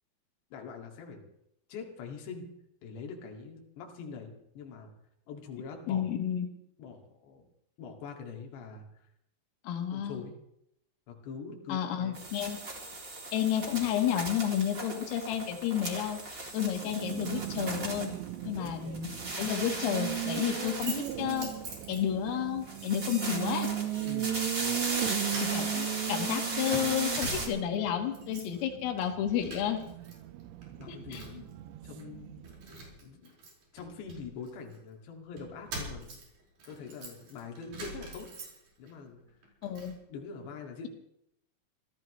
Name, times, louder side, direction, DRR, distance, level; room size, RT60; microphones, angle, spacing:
voice 1, 0.5-1.3 1.7-4.9 5.3-6.1 6.8-7.5 7.8-8.9 9.9-10.4 11.1-12.2 18.4-18.9 24.0-24.9 30.8-31.5 31.8-32.6 33.0-33.3 33.7-36.2 36.7-38.3 38.8-39.2 40.1-40.9, left 5 dB, 60° left, 1 dB, 4.1 m, -44 dB
voice 2, 5.9-6.5 9.6-10.2 11.7-12.6 13.3-16.2 16.5-18.1 18.4-19.1 19.4-21.5 21.9-23.7 25.4-29.8 30.9-31.2 39.6-39.9, left 10 dB, 85° left, 4 dB, 4.4 m, -31 dB
sound 1, 12.1-18.7 18.9-21.8 22.6-27.5, right 2 dB, 25° right, 2.1 m, -37 dB
Race car auto racing, 16.6-32.8, right 14 dB, 80° right, 2.7 m, -37 dB
Keys jangling, 20.1-22.4 22.8-23.0 23.6-24.2 24.5-25.0 25.3-27.8 28.1-28.6 28.9-30.1 30.4-31.5 32.0-32.1 32.4-34.8 35.4-38.9 39.3-40.0, right 2 dB, 45° right, 6.1 m, -44 dB
26.0 x 16.0 x 3.2 m, 0.78 s
omnidirectional pair, 5.8 m